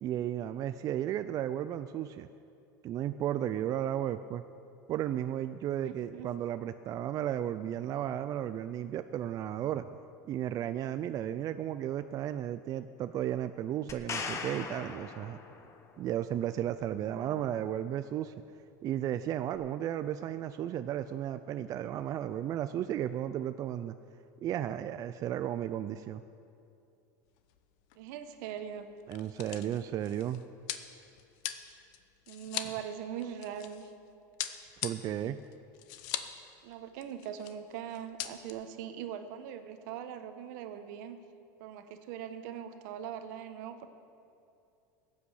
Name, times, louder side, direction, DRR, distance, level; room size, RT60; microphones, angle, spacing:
voice 1, 0.0-2.3 2.8-4.4 4.9-10.0 10.3-15.4 16.0-18.3 18.8-23.9 24.4-26.2 29.1-30.4 34.8-35.4, right 11 dB, 35° right, 10 dB, 0.4 m, -34 dB
voice 2, 5.8-6.3 17.1-17.7 27.9-28.9 32.3-33.9 36.6-41.2 41.6-43.9, right 9 dB, 70° right, 9 dB, 1.1 m, -41 dB
sound 1, 13.9-15.9 19.5-19.6, left 5 dB, 30° left, 1.1 m, -39 dB
sound 2, 27.4-27.6 27.9-28.0 28.8-33.9 34.4-36.4 36.7-36.8 37.0-37.6 37.9-38.5, left 12 dB, 65° left, 0.8 m, -40 dB
15.5 x 8.6 x 6.4 m, 2.6 s
supercardioid pair, 125°, 10 cm